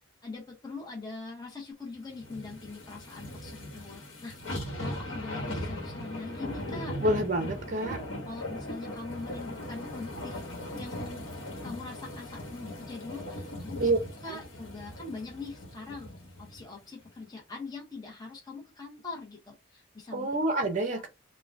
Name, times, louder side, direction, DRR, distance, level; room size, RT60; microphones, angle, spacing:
voice 1, 0.2-4.4 4.7-7.0 7.6-10.5 10.8-11.2 11.6-13.9 14.2-16.1 16.4-20.3 20.9-21.0, left 3 dB, 20° left, 0.8 m, -42 dB
sound 1, 2.2-16.6 17.1-17.2, left 1 dB, 90° left, 1.0 m, -39 dB
voice 2, 7.0-8.0 13.8-14.0 14.2-14.4 20.1-21.1, right 1 dB, 40° right, 0.6 m, -27 dB
3.7 x 2.1 x 2.5 m
head